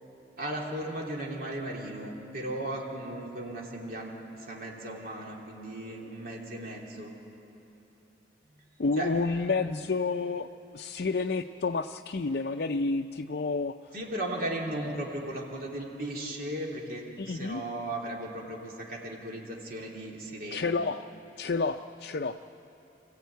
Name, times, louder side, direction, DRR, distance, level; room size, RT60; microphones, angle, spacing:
voice 1, 0.4-7.1 9.0-9.1 9.4-9.7 13.9-20.7, right 1 dB, 55° right, -2 dB, 3.1 m, -36 dB
voice 2, 8.8-13.8 17.2-17.6 20.5-21.1 21.4-22.4, left 4 dB, 60° left, 5 dB, 0.5 m, -30 dB
25.5 x 15.0 x 9.3 m, 3.0 s
head